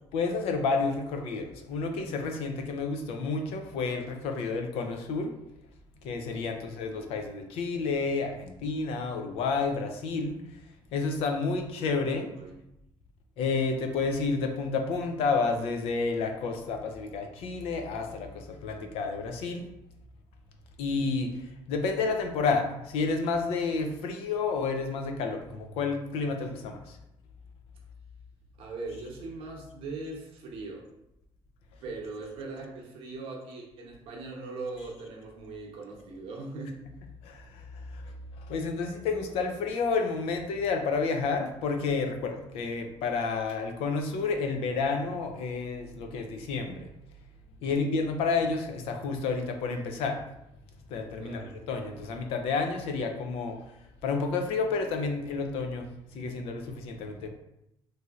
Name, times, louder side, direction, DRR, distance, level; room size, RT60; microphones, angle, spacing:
voice 1, 0.1-5.3 6.0-10.4 10.9-12.3 13.4-19.6 20.8-21.3 21.7-27.0 37.2-38.1 38.5-46.9 47.6-50.2 50.9-53.6 54.0-55.9 56.1-57.3, left 4 dB, 80° left, 4 dB, 0.5 m, -30 dB
voice 2, 12.2-12.6 28.6-30.9 31.8-36.8 47.6-47.9 51.2-51.5, right 3 dB, 70° right, -1 dB, 0.8 m, -40 dB
3.0 x 2.7 x 2.4 m, 0.84 s
cardioid pair, 135°, 10 cm